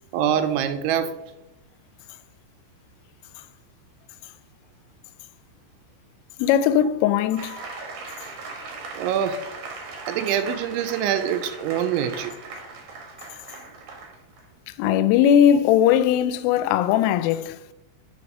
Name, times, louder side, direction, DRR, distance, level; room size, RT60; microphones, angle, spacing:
voice 1, 0.1-1.2 6.8-6.9 8.9-9.4 10.1-12.3, right 9 dB, 85° right, 2.9 m, -24 dB
voice 2, 6.4-7.5 14.8-17.6, left 10 dB, 90° left, 3.1 m, -19 dB
sound 1, 7.4-14.5, right 3 dB, 70° right, 1.8 m, -39 dB
8.6 x 4.8 x 5.3 m
omnidirectional pair, 5.6 m